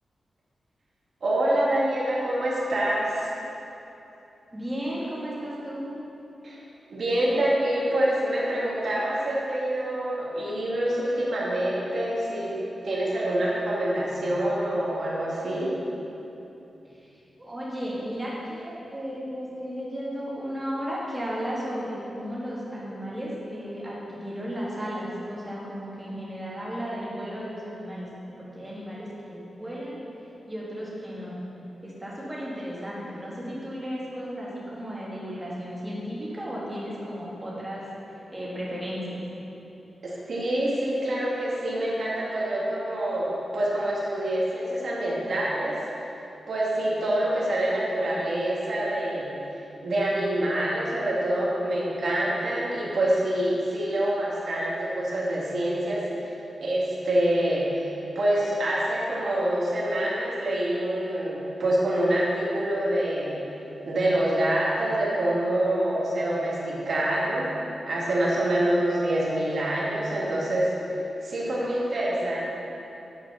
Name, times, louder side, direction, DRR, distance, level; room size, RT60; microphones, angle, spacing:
voice 1, 1.2-3.3 6.4-6.6 6.9-12.5 12.8-15.7 40.0-45.8 46.5-49.3 49.8-63.4 63.9-67.5 67.9-70.7 71.2-72.4, right 1 dB, 60° right, -5 dB, 1.9 m, -26 dB
voice 2, 4.5-5.9 16.8-28.1 28.4-30.0 30.5-31.4 31.8-39.2, equal, 15° right, -6 dB, 1.9 m, -34 dB
8.7 x 4.9 x 5.6 m, 3.0 s
wide cardioid pair, 145°, 0 cm